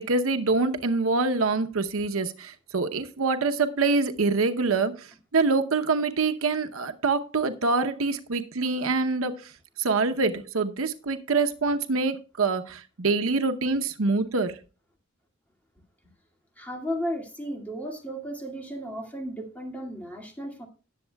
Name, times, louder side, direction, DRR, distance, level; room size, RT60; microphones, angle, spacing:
voice 1, 0.0-9.5 9.8-14.6, right 3 dB, 85° right, 0.8 m, -25 dB
voice 2, 16.6-20.7, equal, 10° left, 2.1 m, -34 dB
18.5 x 7.2 x 2.3 m
head